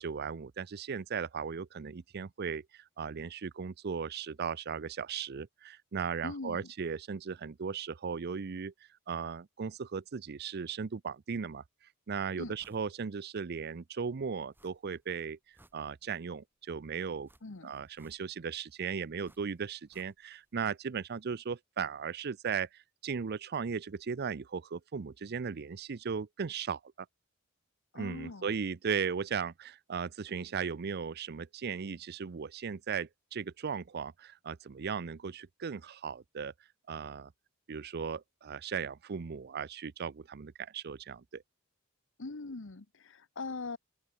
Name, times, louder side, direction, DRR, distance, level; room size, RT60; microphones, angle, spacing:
voice 1, 0.0-8.7 9.1-11.6 12.1-15.4 15.7-17.3 17.6-26.9 27.9-36.5 36.9-37.3 37.7-41.4, right 6 dB, 50° right, 0.5 m, -37 dB
voice 2, 6.2-6.7 12.4-12.6 17.4-17.7 27.9-28.5 42.2-43.8, left 3 dB, 65° left, 1.1 m, -41 dB
sound 1, 12.6-12.9 13.3-13.4 14.5-15.0 15.4-16.3 17.2-18.5 19.2-20.5 20.7-20.8, right 1 dB, 10° right, 5.4 m, -65 dB
open air
head